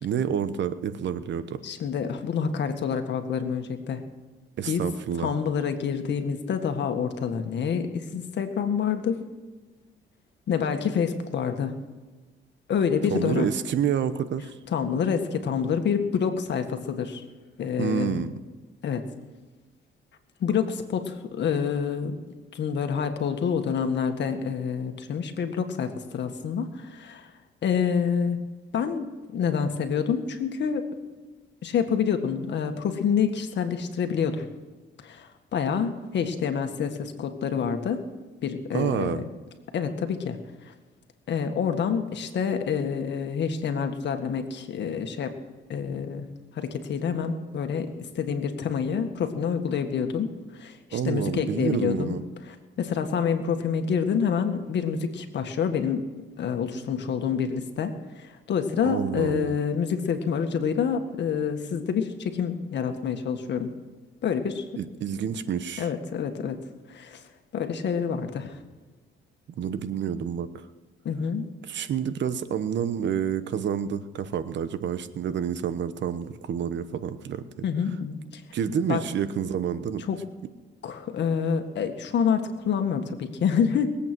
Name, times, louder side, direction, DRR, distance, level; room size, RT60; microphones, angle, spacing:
voice 1, 0.0-1.6 4.6-5.3 13.1-14.5 17.8-18.3 38.7-39.2 50.9-52.2 58.8-59.5 64.8-65.9 69.6-70.5 71.7-77.4 78.5-80.0, right 8 dB, 65° right, 12 dB, 1.0 m, -28 dB
voice 2, 1.6-4.1 4.7-4.9 5.2-9.2 10.5-11.8 12.7-13.5 14.7-17.2 17.6-18.3 18.8-19.1 20.4-22.1 22.5-27.3 27.6-30.9 31.6-34.5 35.0-38.1 38.4-39.3 39.7-40.4 40.6-40.7 41.3-45.4 45.7-46.3 46.5-50.3 50.5-52.2 52.4-56.1 56.4-63.7 64.2-64.6 65.8-66.6 66.9-67.2 67.5-68.6 71.1-71.5 77.6-78.4 78.9-79.0 80.1-80.2 80.8-83.9, left 7 dB, 65° left, 6 dB, 1.8 m, -27 dB
21.5 x 8.5 x 6.2 m, 1.3 s
cardioid pair, 90°, 20 cm